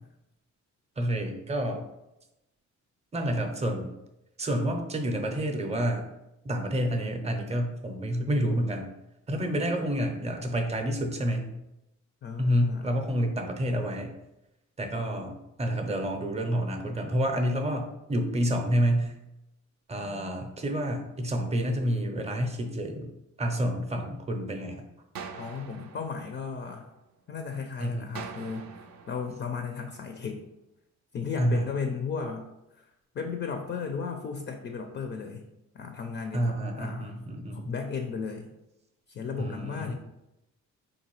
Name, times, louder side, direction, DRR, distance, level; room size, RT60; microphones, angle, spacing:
voice 1, 1.0-1.8 3.1-3.9 4.4-6.0 6.4-8.9 9.3-11.5 12.4-14.1 14.8-19.1 19.9-23.1 23.4-24.8 27.8-28.1 31.4-31.7 36.3-37.7 39.4-39.9, equal, 20° right, 4 dB, 0.6 m, -29 dB
voice 2, 12.2-12.9 25.4-26.9 27.3-28.7 29.1-30.4 31.1-32.5 32.7-32.9 33.1-35.5 35.7-37.2 37.5-38.5 39.1-39.9, left 5 dB, 35° left, 5 dB, 0.4 m, -35 dB
sound 1, 25.1-27.2 28.1-30.2, right 6 dB, 65° right, 0.5 m, -45 dB
3.8 x 2.6 x 3.0 m, 0.90 s
cardioid pair, 90°, 30 cm